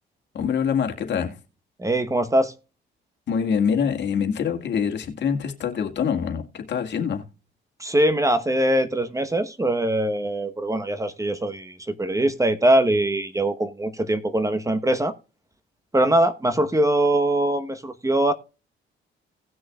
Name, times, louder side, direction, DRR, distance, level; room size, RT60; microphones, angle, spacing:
voice 1, 0.3-1.4 3.3-7.2, left 7 dB, 60° left, 1.9 m, -25 dB
voice 2, 1.8-2.5 7.8-15.1 15.9-18.3, right 1 dB, 15° right, 1.0 m, -22 dB
18.0 x 6.3 x 2.3 m
cardioid pair, 90°, 20 cm